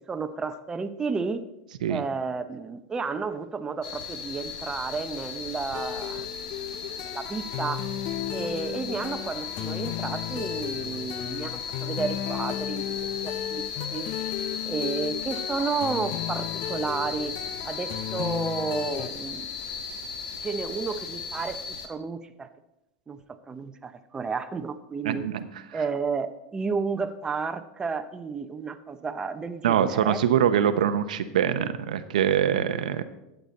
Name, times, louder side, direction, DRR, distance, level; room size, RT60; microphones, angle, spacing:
voice 1, 0.1-1.4 1.9-6.3 7.1-7.9 8.3-12.8 13.2-13.6 13.9-14.1 14.6-17.3 17.6-19.5 20.4-22.5 23.1-25.2 25.7-30.2, right 5 dB, 20° right, 8 dB, 0.7 m, -32 dB
sound 1, 3.8-21.9, left 6 dB, 75° left, 1.4 m, -36 dB
sound 2, 5.7-19.1, left 11 dB, 50° left, 0.5 m, -34 dB
voice 2, 25.0-25.5 25.7-25.8 29.6-33.0, right 9 dB, 85° right, 11 dB, 0.7 m, -24 dB
12.5 x 8.1 x 4.1 m, 0.90 s
hypercardioid pair, 115°, 4 cm